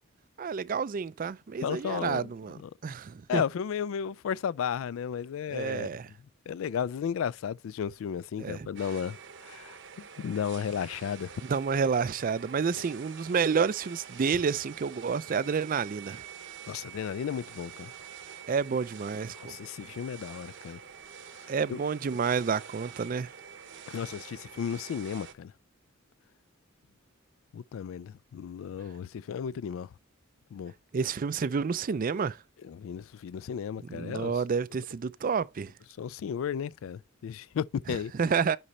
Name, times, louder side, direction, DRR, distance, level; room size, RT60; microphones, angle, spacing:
voice 1, 0.4-3.4 5.5-6.1 8.4-8.7 11.4-16.2 18.5-19.6 21.5-23.3 30.9-32.4 33.9-35.7 38.2-38.6, right 5 dB, 40° right, 0.4 m, -29 dB
voice 2, 1.6-2.3 2.5-2.7 3.3-5.9 6.5-11.4 16.7-17.9 19.4-20.8 21.7-21.8 23.9-25.5 27.5-29.9 30.5-30.7 32.6-34.3 36.0-38.1, left 7 dB, 70° left, 0.3 m, -34 dB
sound 1, 8.8-25.3, right 7 dB, 60° right, 0.9 m, -47 dB
10.0 x 4.3 x 4.1 m
head